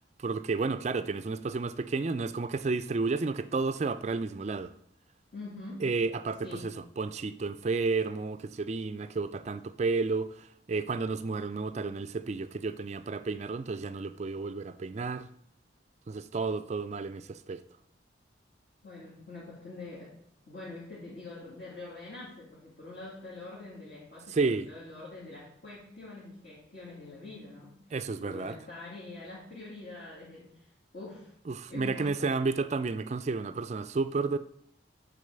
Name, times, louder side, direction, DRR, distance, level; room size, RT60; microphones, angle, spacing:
voice 1, 0.2-4.7 5.8-15.3 16.1-17.6 24.3-24.7 27.9-28.6 31.5-34.4, right 4 dB, 35° right, 0.3 m, -31 dB
voice 2, 5.3-5.9 6.4-6.8 18.8-20.2 20.5-27.7 28.2-30.7 30.9-31.3 31.7-32.3, left 2 dB, 50° left, 2.4 m, -45 dB
8.4 x 4.0 x 6.7 m
head